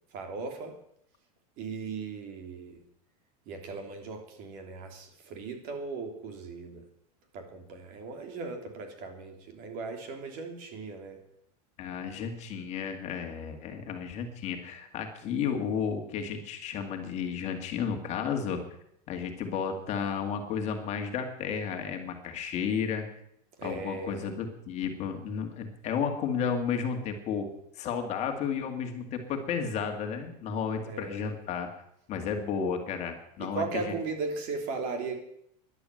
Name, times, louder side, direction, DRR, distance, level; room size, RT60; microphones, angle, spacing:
voice 1, 0.1-0.7 1.6-2.8 3.5-6.8 7.3-11.2 23.6-24.2 30.8-31.2 33.4-35.2, right 4 dB, 45° right, 4 dB, 3.3 m, -37 dB
voice 2, 11.8-18.6 19.1-23.1 23.6-27.5 27.8-31.7 32.1-33.9, left 6 dB, 35° left, 5 dB, 2.2 m, -32 dB
13.5 x 11.0 x 7.8 m, 0.75 s
supercardioid pair, 150°, 20 cm